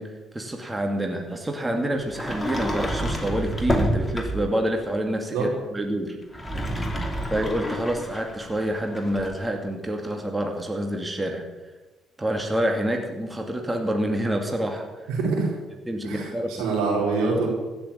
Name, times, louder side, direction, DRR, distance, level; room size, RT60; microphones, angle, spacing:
voice 1, 0.0-6.2 6.8-11.4 12.2-15.1 15.9-16.6, right 1 dB, 15° right, 3 dB, 2.4 m, -27 dB
Sliding door, 2.1-4.6 6.2-9.4, equal, 15° left, 2.8 m, -29 dB
voice 2, 15.1-15.5 16.0-17.5, right 4 dB, 80° right, -2 dB, 4.9 m, -25 dB
15.5 x 7.0 x 8.9 m, 1.2 s
supercardioid pair, 60°, 0 cm